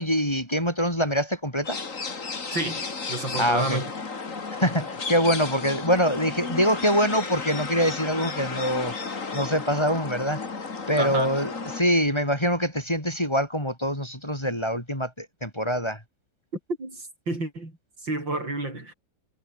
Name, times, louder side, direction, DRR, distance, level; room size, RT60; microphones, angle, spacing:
voice 1, 0.0-1.8 3.3-3.8 4.5-8.9 9.3-10.4 10.9-16.0, equal, 15° left, 6.4 m, -24 dB
sound 1, 1.6-11.8, left 4 dB, 45° left, 2.8 m, -33 dB
voice 2, 2.5-3.9 11.0-11.3 16.8-17.7 18.0-18.9, right 2 dB, 75° right, 8.8 m, -30 dB
omnidirectional pair, 2.0 m